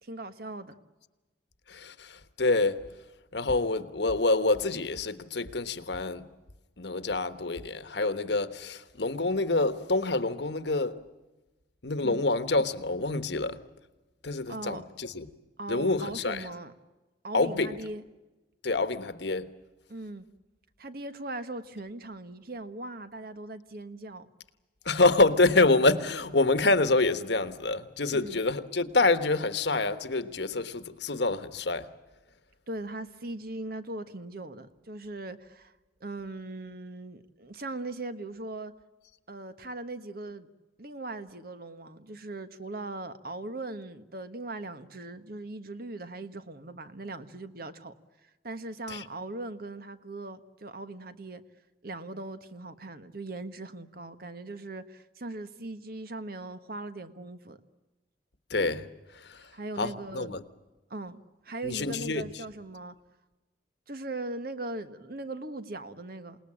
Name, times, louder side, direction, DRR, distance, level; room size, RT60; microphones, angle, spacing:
voice 1, 0.0-0.7 12.0-12.2 14.5-14.8 15.6-16.7 17.2-18.0 19.9-20.3 20.8-24.3 28.1-28.4 32.7-35.7 36.0-38.7 39.3-40.5 40.8-47.9 48.2-51.4 51.8-57.6 59.4-60.4 60.9-62.9 63.9-66.4, right 2 dB, 55° right, 1.4 m, -39 dB
voice 2, 1.7-2.8 3.3-6.2 6.8-11.0 11.8-13.6 14.2-15.2 15.7-16.4 17.3-17.8 18.6-19.5 24.8-31.9 48.9-49.0 58.5-58.9 59.8-60.4 61.6-62.2, left 2 dB, 65° left, 1.3 m, -26 dB
28.0 x 19.5 x 8.8 m
head